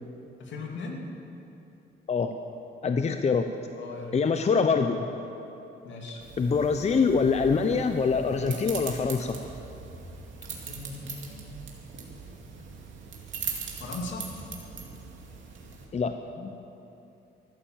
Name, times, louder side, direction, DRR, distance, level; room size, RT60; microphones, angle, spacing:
voice 1, 0.4-1.0 3.7-4.2 5.8-6.2 10.5-11.6 13.8-14.2, left 3 dB, 70° left, 0 dB, 2.6 m, -38 dB
voice 2, 2.8-3.5 4.1-5.1 6.4-9.4 15.9-16.5, left 5 dB, 35° left, 7 dB, 0.7 m, -24 dB
sound 1, 6.2-15.9, right 6 dB, 75° right, 2.4 m, -41 dB
14.0 x 11.5 x 7.4 m, 2.9 s
cardioid pair, 90°, 20 cm